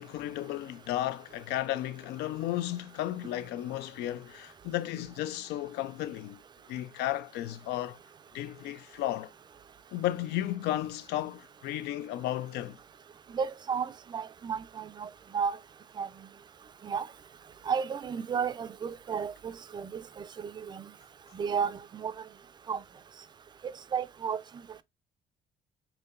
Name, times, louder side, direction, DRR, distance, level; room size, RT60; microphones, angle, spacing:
voice 1, 0.0-6.4 6.7-8.0 8.3-9.3 9.9-12.8, left 13 dB, 80° left, 0.4 m, -34 dB
voice 2, 13.3-15.6 16.0-16.1 16.8-17.1 17.7-20.9 21.3-22.1 22.7-22.8 23.9-24.4, right 6 dB, 25° right, 0.3 m, -33 dB
4.5 x 2.8 x 2.4 m
cardioid pair, 110°, 17 cm